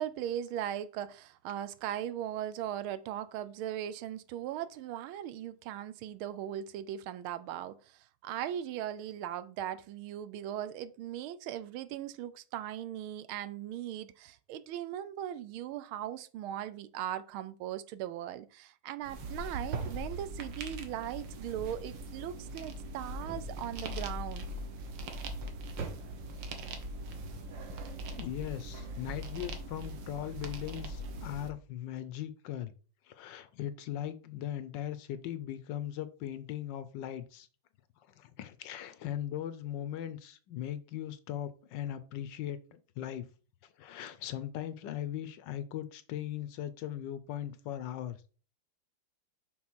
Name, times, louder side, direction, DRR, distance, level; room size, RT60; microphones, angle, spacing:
voice 1, 0.0-24.4, right 11 dB, 80° right, 1.4 m, -39 dB
sound 1, 19.0-31.5, right 1 dB, 65° right, 1.7 m, -40 dB
voice 2, 28.1-32.7 33.1-37.5 38.2-43.3 43.6-48.3, left 11 dB, 70° left, 1.1 m, -39 dB
6.2 x 3.7 x 6.0 m
omnidirectional pair, 2.4 m